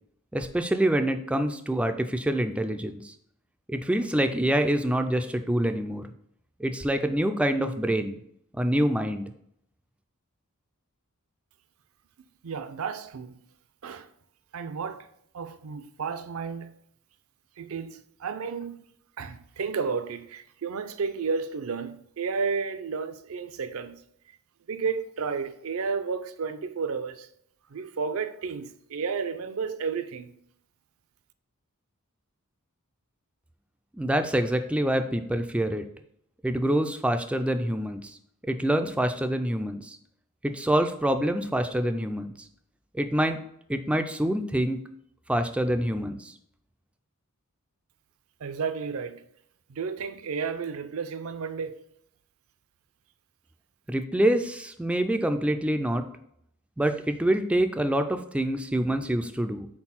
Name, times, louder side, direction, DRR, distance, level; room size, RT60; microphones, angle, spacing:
voice 1, 0.3-3.1 3.7-6.0 6.6-8.2 8.6-9.2 34.0-35.9 36.4-38.1 38.5-40.0 40.4-42.3 42.9-43.4 43.7-44.8 45.3-46.3 53.9-56.0 56.8-59.7, right 1 dB, 5° right, 0.3 m, -26 dB
voice 2, 12.4-13.4 13.8-14.1 14.5-15.1 15.3-16.7 17.6-18.8 19.2-24.0 24.7-27.3 27.7-30.3 48.4-49.2 49.7-51.8, right 5 dB, 65° right, 0.5 m, -32 dB
4.4 x 4.2 x 5.6 m
head